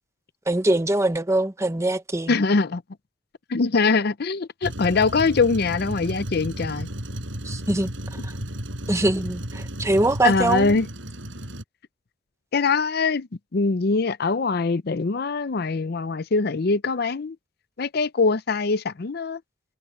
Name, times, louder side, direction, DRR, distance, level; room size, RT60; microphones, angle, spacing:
voice 1, 0.5-2.4 7.4-8.3 8.9-10.8, right 1 dB, 15° right, 1.0 m, -23 dB
voice 2, 2.3-2.8 3.5-6.9 10.2-10.9 12.5-17.4 17.8-19.4, left 4 dB, 55° left, 0.6 m, -23 dB
Truck, 4.6-11.6, equal, 80° right, 7.7 m, -33 dB
head